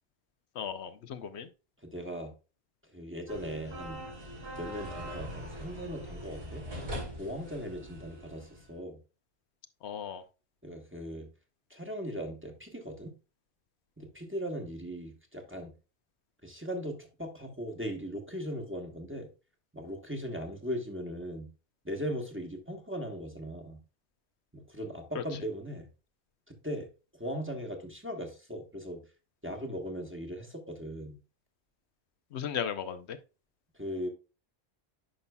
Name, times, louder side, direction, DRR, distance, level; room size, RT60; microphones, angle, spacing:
voice 1, 0.6-1.5 9.8-10.2 25.1-25.2 32.3-33.2, left 8 dB, 80° left, 10 dB, 1.0 m, -36 dB
voice 2, 1.8-2.3 2.9-4.0 4.5-6.6 7.2-9.0 10.6-11.3 11.7-13.1 14.0-15.7 16.4-19.3 19.7-21.5 21.8-23.8 24.5-25.9 26.5-26.9 27.2-29.0 29.4-31.2 33.7-34.1, equal, 10° right, 3 dB, 1.1 m, -38 dB
sound 1, 3.3-8.7, equal, 80° right, 2.7 m, -42 dB
10.0 x 5.5 x 2.2 m, 0.31 s
omnidirectional pair, 1.1 m